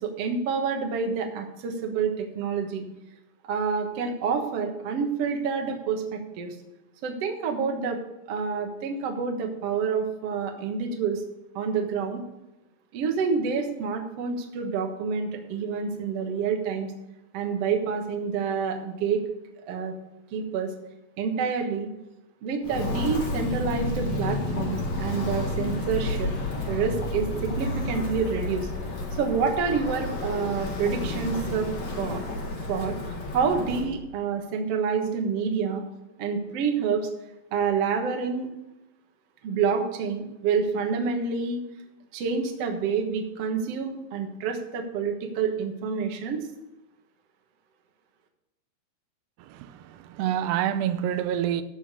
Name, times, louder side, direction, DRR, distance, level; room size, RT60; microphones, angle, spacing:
voice 1, 0.0-2.9 3.4-6.5 7.0-8.0 8.3-11.2 11.5-12.2 12.9-16.9 17.3-19.2 19.7-19.9 20.3-20.7 21.2-21.9 22.4-26.3 26.7-28.7 29.2-31.7 32.0-32.2 32.7-33.0 33.3-35.8 36.2-37.1 37.5-38.5 39.4-41.6 42.1-46.4, right 5 dB, 70° right, 3 dB, 1.5 m, -28 dB
Walk footsteps, 22.6-33.9, left 2 dB, 45° left, 2.3 m, -31 dB
voice 2, 49.4-51.6, right 10 dB, 85° right, 11 dB, 2.8 m, -27 dB
13.0 x 5.1 x 6.6 m, 0.93 s
omnidirectional pair, 4.8 m